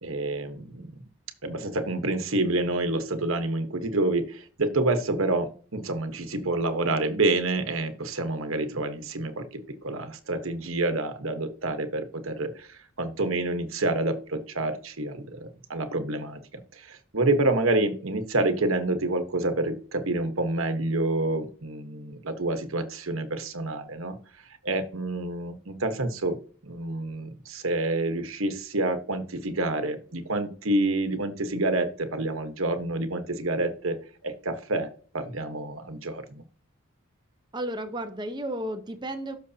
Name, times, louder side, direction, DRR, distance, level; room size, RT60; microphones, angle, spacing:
voice 1, 0.0-0.9 1.4-24.2 24.6-26.4 26.6-34.0 34.2-34.9 35.1-36.4, right 2 dB, 75° right, 8 dB, 1.2 m, -28 dB
voice 2, 37.5-39.4, right 1 dB, 20° right, 7 dB, 0.9 m, -33 dB
12.5 x 6.2 x 2.8 m, 0.41 s
head